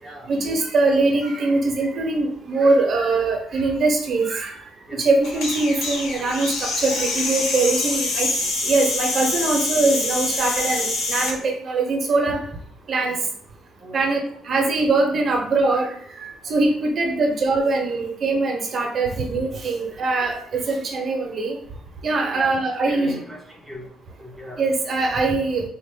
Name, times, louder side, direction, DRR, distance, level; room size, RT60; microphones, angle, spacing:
voice 1, 0.3-4.5 4.9-8.3 8.7-12.4 12.9-13.2 13.9-14.2 14.5-15.9 16.2-21.6 22.0-23.2 24.6-25.6, right 3 dB, 45° right, 2 dB, 0.8 m, -22 dB
sound 1, 5.2-11.4, left 3 dB, 85° left, 0.9 m, -25 dB
voice 2, 13.8-14.4 14.6-14.8 22.3-23.8 24.2-24.6, equal, ahead, -1 dB, 0.9 m, -39 dB
4.1 x 2.4 x 3.6 m, 0.62 s
cardioid pair, 115°, 0 cm